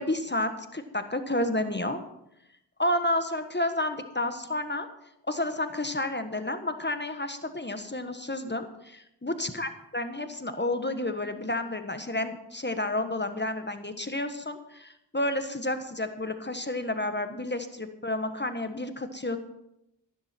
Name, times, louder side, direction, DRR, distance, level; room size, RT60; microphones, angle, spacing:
voice 1, 0.0-2.0 2.8-4.9 5.3-19.4, left 1 dB, 25° left, 8 dB, 1.4 m, -30 dB
14.0 x 11.5 x 4.5 m, 0.82 s
cardioid pair, 45°, 42 cm